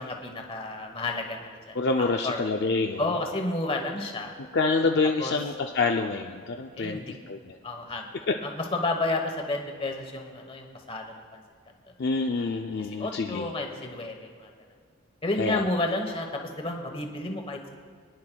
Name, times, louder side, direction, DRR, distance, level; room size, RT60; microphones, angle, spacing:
voice 1, 0.0-2.4 3.0-4.3 5.2-5.3 6.7-7.1 7.6-11.4 12.8-14.5 15.2-17.7, left 2 dB, 25° left, 3 dB, 1.1 m, -31 dB
voice 2, 1.7-3.1 4.5-7.6 12.0-13.5 15.4-15.6, left 3 dB, 50° left, 3 dB, 0.4 m, -27 dB
22.0 x 10.5 x 2.3 m, 2.2 s
head